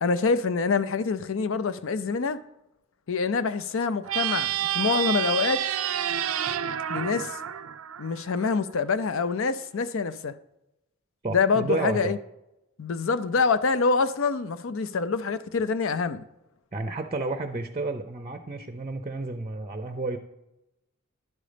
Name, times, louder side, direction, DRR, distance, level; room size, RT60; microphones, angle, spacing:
voice 1, 0.0-2.4 3.1-5.6 6.9-7.4 8.0-10.3 11.3-12.2 12.8-16.2, left 4 dB, 65° left, 0.5 m, -26 dB
sound 1, 4.0-8.5, right 11 dB, 75° right, 0.5 m, -29 dB
voice 2, 11.2-12.1 16.7-20.2, right 3 dB, 25° right, 0.6 m, -31 dB
11.0 x 5.2 x 5.0 m
head